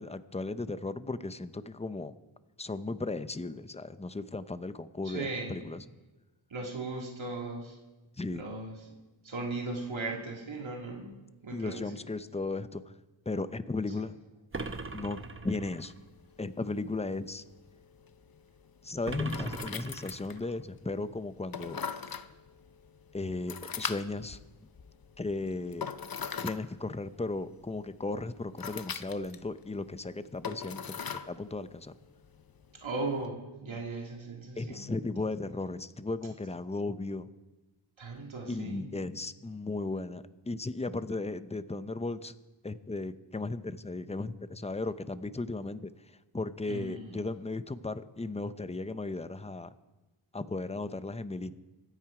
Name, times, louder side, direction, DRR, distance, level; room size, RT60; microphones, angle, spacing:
voice 1, 0.0-2.1 2.6-5.8 8.2-8.4 11.5-12.8 13.3-14.1 14.9-15.9 16.4-17.4 18.8-21.8 23.1-24.4 25.2-25.9 26.4-31.9 34.6-37.3 38.5-42.3 42.6-45.9 46.3-49.7 50.3-51.6, left 3 dB, 15° left, 13 dB, 0.6 m, -36 dB
voice 2, 5.0-5.6 6.5-7.8 8.3-8.9 9.2-12.0 32.8-34.9 38.0-38.9 46.7-47.2, right 3 dB, 75° right, 0 dB, 2.0 m, -38 dB
sound 1, 14.5-16.0 19.1-20.6, right 3 dB, 25° right, 0.9 m, -40 dB
sound 2, 15.8-33.3, left 6 dB, 50° left, 0.7 m, -43 dB
25.0 x 9.1 x 4.9 m, 1.1 s
wide cardioid pair, 80°, 47 cm